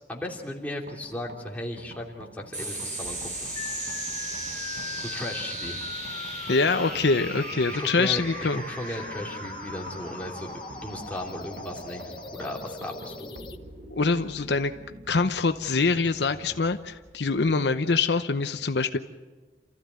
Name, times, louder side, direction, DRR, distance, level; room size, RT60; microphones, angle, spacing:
voice 1, 0.1-3.5 5.0-5.8 7.7-10.5 10.8-13.4, left 1 dB, 10° left, -1 dB, 3.0 m, -36 dB
sound 1, 0.9-18.1, right 1 dB, 65° right, 1.3 m, -48 dB
sound 2, 2.5-17.3, right 2 dB, 45° right, 7.1 m, -39 dB
sound 3, 3.6-13.6, left 5 dB, 25° left, 1.0 m, -41 dB
voice 2, 6.5-8.6 8.9-9.0 13.9-14.7 15.1-19.0, left 4 dB, 75° left, 9 dB, 0.8 m, -24 dB
28.0 x 14.5 x 9.5 m, 1.3 s
head